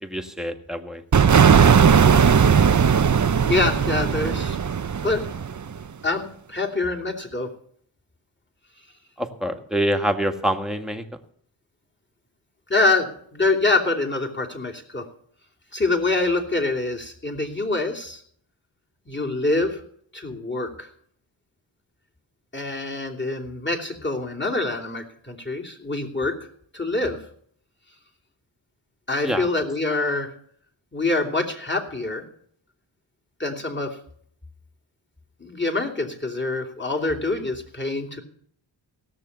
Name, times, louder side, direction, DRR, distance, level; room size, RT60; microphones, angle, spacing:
voice 1, 0.0-1.0 9.2-11.0 29.2-29.5, equal, ahead, 4 dB, 1.8 m, -26 dB
sound 1, 1.1-5.8, right 7 dB, 35° right, 0.7 m, -17 dB
voice 2, 3.4-4.6 5.0-5.2 6.0-7.5 12.7-15.0 15.7-18.2 19.1-19.8 20.1-20.9 22.5-26.5 26.7-27.2 29.1-30.3 30.9-32.2 33.4-34.0 35.4-38.2, left 2 dB, 20° left, 1 dB, 3.0 m, -25 dB
17.0 x 6.7 x 8.2 m, 0.62 s
cardioid pair, 45°, 50 cm